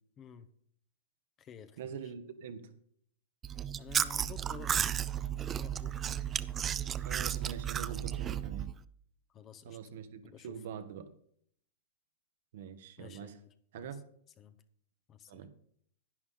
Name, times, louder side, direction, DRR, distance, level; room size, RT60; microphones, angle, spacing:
voice 1, 0.2-0.5 1.4-1.9 3.8-4.7 5.5-6.0 9.3-9.8 10.2-10.6 13.0-13.5 13.7-13.9 14.4-14.5 15.1-15.5, left 8 dB, 30° left, 10 dB, 0.9 m, -51 dB
voice 2, 1.8-2.7 7.0-8.7 9.6-11.1 12.5-13.4 13.7-14.0 15.3-15.5, right 7 dB, 65° right, 9 dB, 1.2 m, -44 dB
Chewing mastication, 3.4-8.8, right 9 dB, 25° right, 0.4 m, -34 dB
11.0 x 9.7 x 3.8 m, 0.64 s
hypercardioid pair, 115°, 0 cm